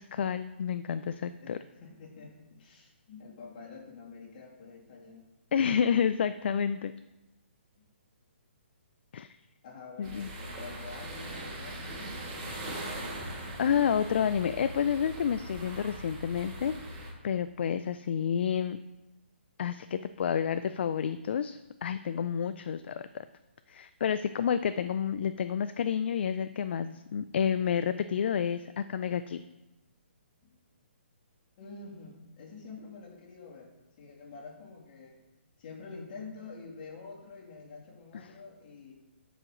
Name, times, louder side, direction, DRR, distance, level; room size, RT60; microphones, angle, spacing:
voice 1, 0.0-1.6 5.5-6.9 9.1-9.4 10.0-10.3 12.5-12.8 13.6-16.7 17.2-18.8 19.6-23.3 23.7-29.4 38.2-38.3, left 8 dB, 60° left, 12 dB, 0.4 m, -30 dB
voice 2, 1.4-5.3 9.6-12.1 30.4-30.6 31.6-33.7 34.0-35.2 35.6-38.9, left 4 dB, 40° left, -2 dB, 2.5 m, -47 dB
sound 1, 10.0-17.1, right 1 dB, 30° right, 3.0 m, -40 dB
13.5 x 5.0 x 3.8 m, 1.0 s
hypercardioid pair, 150°, 7 cm